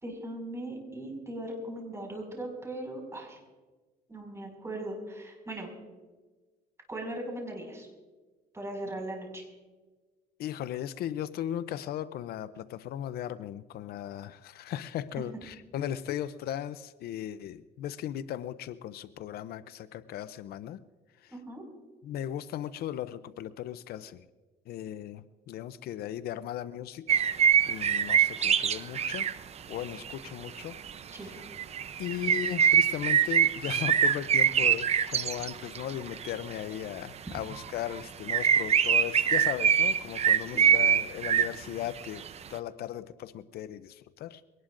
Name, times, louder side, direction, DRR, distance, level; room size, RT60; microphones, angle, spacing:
voice 1, 0.0-3.4 4.1-5.7 6.9-7.9 8.5-9.4 21.3-21.6 31.1-31.3 37.3-37.4 40.5-41.0, right 1 dB, 15° right, 1 dB, 5.6 m, -39 dB
voice 2, 10.4-20.8 21.2-21.3 22.0-24.2 24.7-27.3 27.7-29.3 29.7-30.8 31.2-31.3 32.0-42.2 42.5-44.4, left 11 dB, 65° left, 14 dB, 0.5 m, -37 dB
sound 1, 27.1-29.3 29.7-30.1 30.5-30.9 31.4-36.5 37.5-38.0 38.3-41.5 42.0-42.3, right 8 dB, 40° right, 0.6 m, -24 dB
23.0 x 18.5 x 2.5 m, 1.3 s
cardioid pair, 110°, 17 cm